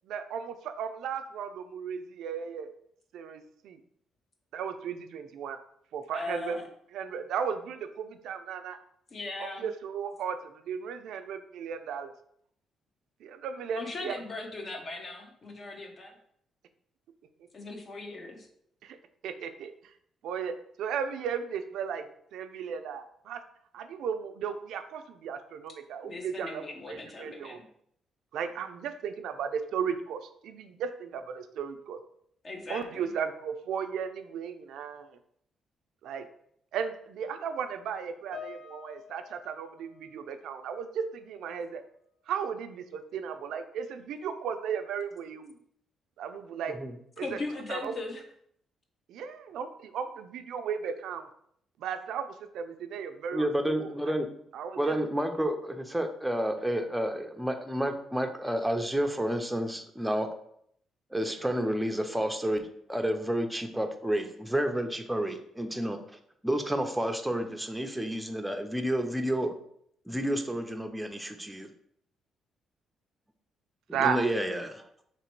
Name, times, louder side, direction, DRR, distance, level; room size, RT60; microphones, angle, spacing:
voice 1, 0.1-2.7 3.1-3.8 4.5-5.6 5.9-6.7 6.9-8.8 9.4-12.1 13.2-14.2 18.8-19.0 19.2-19.7 20.2-22.1 22.3-23.4 23.7-27.6 28.3-32.0 32.7-35.1 36.0-36.3 36.7-41.8 42.3-45.5 46.2-46.8 47.2-47.4 47.7-47.9 49.1-51.3 51.8-53.5 53.8-53.9 54.5-55.0 61.3-61.4 73.9-74.3, right 7 dB, 80° right, 8 dB, 0.4 m, -35 dB
voice 2, 6.1-6.6 9.1-9.7 13.8-16.1 17.5-18.5 26.0-27.6 32.4-33.1 47.2-48.2, left 3 dB, 45° left, 3 dB, 0.9 m, -39 dB
Piano, 38.3-41.0 41.2-41.6 42.3-42.5, left 7 dB, 70° left, 0.4 m, -49 dB
voice 3, 53.3-54.3 54.8-60.3 61.1-66.0 66.4-69.5 70.1-71.7 74.0-74.8, equal, 5° right, 5 dB, 0.5 m, -30 dB
3.1 x 2.9 x 4.5 m, 0.68 s
cardioid pair, 90°, 0 cm